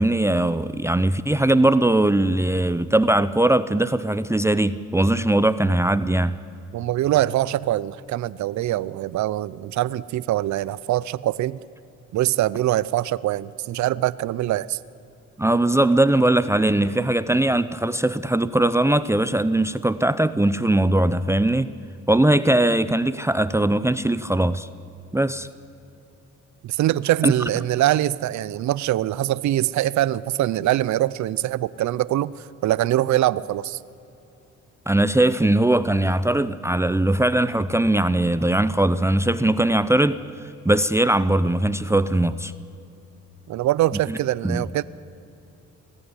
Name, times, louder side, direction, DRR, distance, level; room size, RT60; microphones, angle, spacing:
voice 1, 0.0-6.4 15.4-21.7 22.1-24.7 25.1-25.5 27.2-27.3 34.9-40.2 40.6-42.5 44.1-44.2 44.4-44.7, right 1 dB, 10° right, 14 dB, 0.6 m, -20 dB
voice 2, 6.7-11.6 12.1-14.8 26.6-33.8 43.5-44.8, right 14 dB, 70° right, 19 dB, 0.6 m, -23 dB
20.5 x 14.5 x 9.8 m, 2.8 s
cardioid pair, 90°, 30 cm